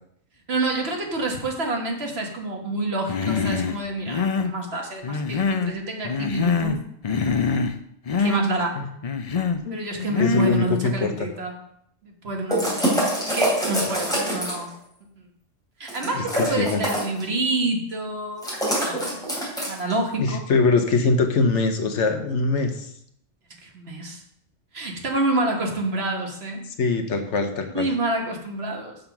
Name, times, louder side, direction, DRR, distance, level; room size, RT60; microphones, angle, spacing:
voice 1, 0.5-6.8 8.2-8.8 9.7-11.5 12.0-12.9 13.3-14.7 15.8-18.5 18.8-19.2 19.6-20.4 23.6-24.2 24.7-26.6 27.7-29.0, right 2 dB, 55° right, 1 dB, 1.6 m, -27 dB
Human voice, 3.1-3.8 4.1-4.5 5.0-5.8 6.0-6.8 7.0-7.8 8.1-8.4 9.0-9.6 10.1-10.6, left 5 dB, 50° left, 0.4 m, -24 dB
voice 2, 9.6-11.3 16.1-16.8 20.2-22.9 26.8-27.9, left 4 dB, 70° left, 6 dB, 1.1 m, -23 dB
sound 1, 12.5-14.7 15.9-17.2 18.4-19.9, right 1 dB, 5° left, 3.1 m, -25 dB
6.6 x 5.7 x 5.9 m, 0.70 s
omnidirectional pair, 1.3 m